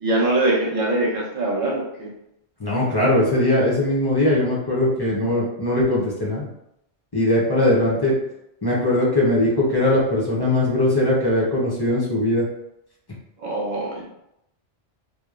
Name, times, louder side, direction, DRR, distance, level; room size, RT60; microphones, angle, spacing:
voice 1, 0.0-2.1 13.4-14.1, right 2 dB, 40° right, -3 dB, 0.6 m, -23 dB
voice 2, 2.6-6.5 7.1-8.1 8.6-12.4, left 1 dB, 35° left, -6 dB, 0.4 m, -20 dB
2.9 x 2.0 x 2.3 m, 0.81 s
omnidirectional pair, 1.1 m